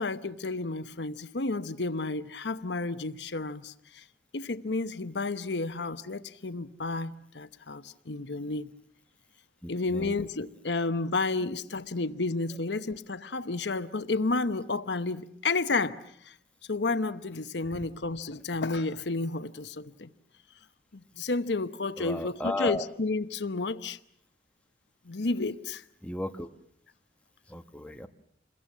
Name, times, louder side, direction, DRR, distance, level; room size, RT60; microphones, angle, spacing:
voice 1, 0.0-4.0 4.3-8.7 9.7-16.4 16.7-20.1 20.9-24.0 25.0-25.8, left 3 dB, 80° left, 1.0 m, -31 dB
voice 2, 9.6-10.1 17.7-17.8 22.0-22.8 26.0-26.5 27.5-28.1, left 2 dB, 5° left, 1.2 m, -34 dB
28.0 x 22.0 x 7.4 m
head